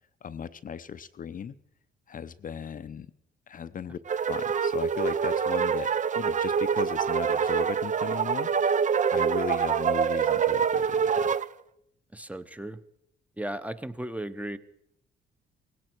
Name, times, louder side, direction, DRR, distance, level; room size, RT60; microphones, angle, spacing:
voice 1, 0.2-1.6 2.1-3.1 3.5-4.0 4.3-8.5 9.1-11.4, left 7 dB, 45° left, 13 dB, 0.7 m, -37 dB
sound 1, 4.1-11.5, right 7 dB, 40° right, 0.6 m, -25 dB
voice 2, 12.1-12.8 13.4-14.6, right 1 dB, 5° right, 12 dB, 0.9 m, -35 dB
18.5 x 17.0 x 4.6 m, 0.79 s
cardioid pair, 90°, 20 cm